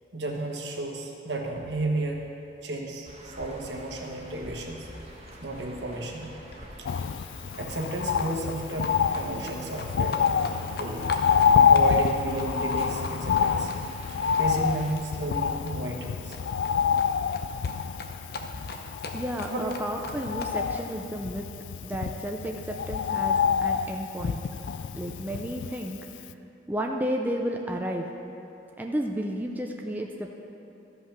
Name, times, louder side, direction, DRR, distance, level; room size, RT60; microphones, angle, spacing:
voice 1, 0.1-2.2 2.6-4.9 5.4-6.3 6.8-6.9 7.6-10.2 10.8-11.1 11.7-13.7 14.4-16.4 19.5-19.7, right 2 dB, 70° right, 0 dB, 1.3 m, -32 dB
sound 1, 3.0-14.9, right 1 dB, 35° right, 1.4 m, -48 dB
Livestock farm animals working animals, 4.8-21.0, left 2 dB, 55° left, 0.8 m, -43 dB
Bird, 6.9-26.0 26.3-26.4, left 7 dB, 85° left, 0.3 m, -27 dB
voice 2, 19.1-21.5 21.8-24.4 24.9-26.0 26.7-28.1 28.8-30.3, equal, 10° right, 1 dB, 0.5 m, -32 dB
13.5 x 5.6 x 5.8 m, 2.9 s
head